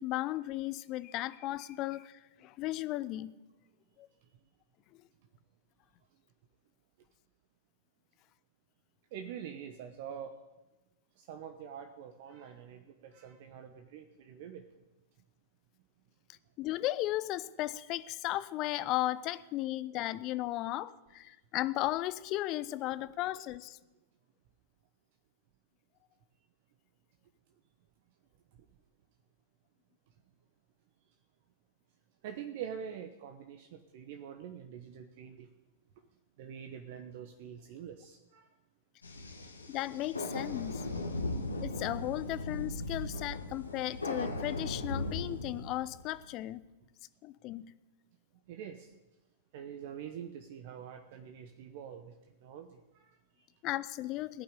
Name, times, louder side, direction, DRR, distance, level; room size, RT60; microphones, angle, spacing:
voice 1, 0.0-3.3 4.0-4.1 16.6-23.8 39.7-40.8 41.6-46.6 47.2-47.7 53.6-54.4, left 16 dB, 40° left, 15 dB, 0.6 m, -35 dB
voice 2, 9.1-10.4 11.2-14.6 32.2-35.5 36.4-38.5 48.5-49.0 49.5-53.4, right 8 dB, 50° right, 6 dB, 1.0 m, -45 dB
sound 1, 39.0-46.2, left 2 dB, 85° left, 1.7 m, -38 dB
17.5 x 5.9 x 10.0 m, 1.1 s
figure-of-eight pair, 100°, 0 cm